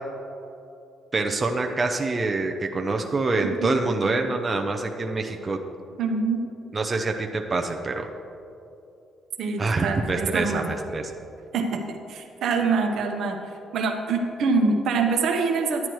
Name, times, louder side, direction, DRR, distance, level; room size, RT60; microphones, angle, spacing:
voice 1, 1.1-5.6 6.7-8.1 9.6-11.1, right 3 dB, 30° right, 2 dB, 0.6 m, -26 dB
voice 2, 6.0-6.4 9.4-10.7 11.5-13.4 13.7-15.9, right 4 dB, 70° right, 4 dB, 0.9 m, -25 dB
10.5 x 9.5 x 3.1 m, 2.8 s
cardioid pair, 85°, 0 cm